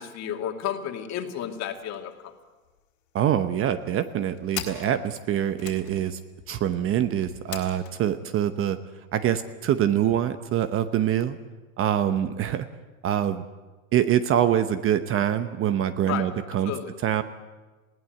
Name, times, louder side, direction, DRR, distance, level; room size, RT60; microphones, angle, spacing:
voice 1, 0.0-2.3 16.1-16.3 16.7-16.9, left 10 dB, 40° left, 5 dB, 2.5 m, -32 dB
sound 1, 1.7-2.0 2.3-2.4 2.6-3.3 3.9-8.0, left 10 dB, 75° left, 3.9 m, -40 dB
voice 2, 3.1-6.2 6.5-8.8 9.1-11.4 11.8-12.7 13.0-13.4 13.9-16.7 17.0-17.2, right 10 dB, 30° right, 11 dB, 0.9 m, -24 dB
20.5 x 16.0 x 9.3 m, 1.3 s
hypercardioid pair, 120°, 43 cm